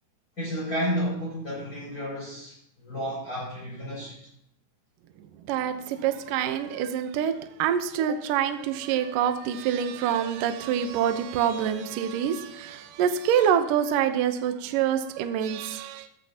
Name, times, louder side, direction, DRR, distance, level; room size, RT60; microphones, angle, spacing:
voice 1, 0.4-4.2, equal, 20° left, -7 dB, 6.7 m, -31 dB
voice 2, 5.5-7.3 7.6-16.1, right 9 dB, 85° right, 8 dB, 1.9 m, -26 dB
15.5 x 13.5 x 2.9 m, 0.71 s
omnidirectional pair, 5.1 m